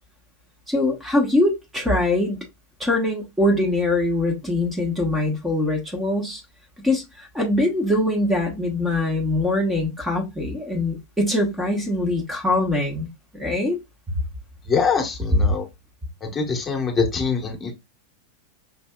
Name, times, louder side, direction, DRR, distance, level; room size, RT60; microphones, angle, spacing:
voice 1, 0.7-2.4 2.8-6.4 6.8-13.1 13.3-13.8, left 1 dB, 5° right, 1.0 m, -23 dB
voice 2, 14.7-15.7 16.2-17.7, left 5 dB, 20° left, 1.2 m, -23 dB
5.6 x 2.6 x 2.3 m
figure-of-eight pair, 90°, 0 cm